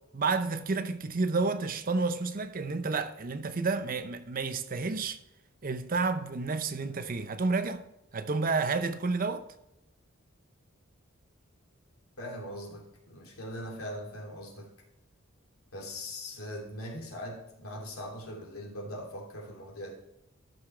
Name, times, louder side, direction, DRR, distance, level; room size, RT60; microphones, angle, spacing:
voice 1, 0.1-5.2 5.6-7.8 8.1-9.4, right 4 dB, 40° right, 0.6 m, -30 dB
voice 2, 12.2-14.7 15.7-19.9, equal, 90° left, 2.9 m, -41 dB
13.0 x 5.9 x 3.3 m
head